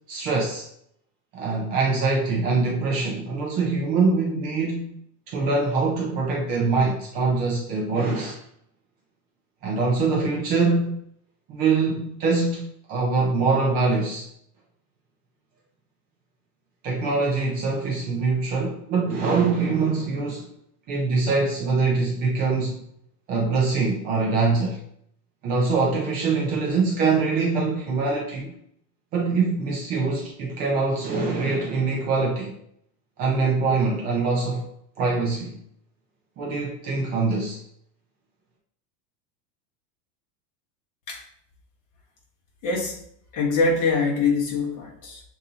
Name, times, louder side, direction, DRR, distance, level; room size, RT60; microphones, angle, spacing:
voice 1, 0.1-0.7 1.3-5.0 5.3-8.4 9.6-11.0 11.5-12.6 12.9-14.3 16.8-20.5 20.9-22.8 23.3-24.8 25.4-28.5 29.1-32.6 33.2-34.7 35.0-35.6 36.4-37.6, right 4 dB, 20° right, -3 dB, 0.3 m, -23 dB
voice 2, 42.6-43.0 43.3-45.2, left 4 dB, 40° left, -1 dB, 1.2 m, -23 dB
6.5 x 2.7 x 2.8 m, 0.69 s
supercardioid pair, 160°, 47 cm